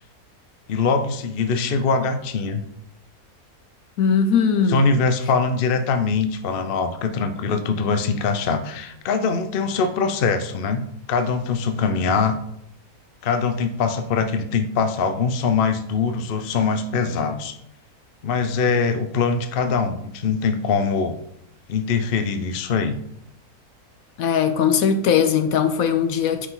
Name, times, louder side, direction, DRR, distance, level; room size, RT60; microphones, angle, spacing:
voice 1, 0.7-2.6 4.7-12.4 13.2-17.5 18.2-21.2 21.7-23.0, left 5 dB, 50° left, 0.7 m, -22 dB
voice 2, 4.0-4.8 24.2-26.5, left 7 dB, 70° left, 1.1 m, -19 dB
9.4 x 5.1 x 3.9 m
omnidirectional pair, 1.6 m